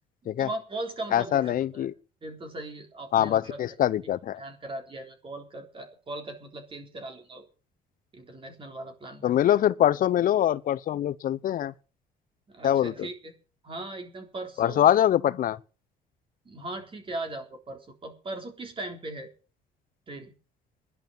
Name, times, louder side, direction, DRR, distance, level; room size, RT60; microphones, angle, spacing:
voice 1, 0.4-1.9 2.2-3.7 4.4-7.5 8.1-9.3 12.5-13.3 13.6-14.9 16.5-19.3 20.1-20.3, right 2 dB, 30° right, 3.7 m, -39 dB
voice 2, 1.1-1.9 3.1-4.4 9.2-11.7 12.6-13.1 14.6-15.6, left 11 dB, 55° left, 0.8 m, -23 dB
12.0 x 11.0 x 7.1 m
cardioid pair, 110°, 17 cm